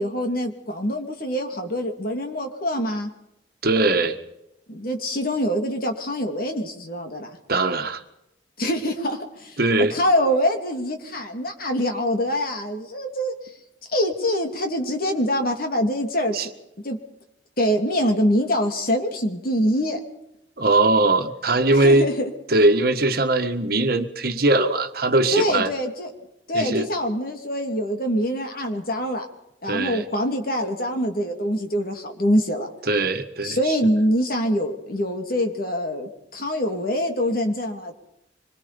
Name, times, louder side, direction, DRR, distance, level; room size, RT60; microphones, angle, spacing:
voice 1, 0.0-3.1 4.7-7.3 8.6-13.3 13.9-16.3 16.8-17.0 17.6-20.0 21.7-22.3 25.3-26.1 26.5-29.3 29.6-32.7 33.4-37.9, equal, 50° left, 4 dB, 3.0 m, -24 dB
voice 2, 3.6-4.2 7.5-8.0 9.6-9.9 16.3-16.5 20.6-22.1 22.5-25.7 26.5-26.9 29.7-30.0 32.9-33.7, right 2 dB, 55° right, 6 dB, 1.7 m, -20 dB
25.5 x 22.0 x 5.3 m, 0.85 s
head